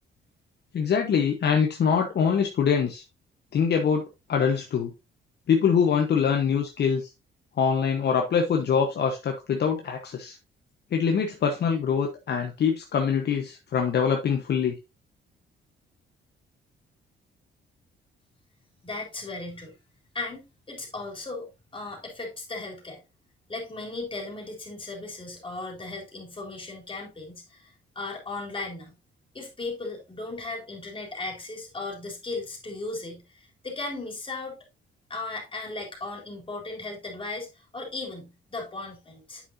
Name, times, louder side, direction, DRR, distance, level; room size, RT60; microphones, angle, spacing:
voice 1, 0.7-3.0 3.5-4.0 4.3-4.9 5.5-7.1 7.6-10.4 10.9-14.8, left 6 dB, 60° left, 1.2 m, -24 dB
voice 2, 18.8-19.7 20.1-23.0 23.5-27.7 28.0-29.0 29.3-34.6 35.1-37.5 37.7-39.4, left 3 dB, 25° left, 3.5 m, -36 dB
8.6 x 5.8 x 2.7 m
cardioid pair, 90°, 20 cm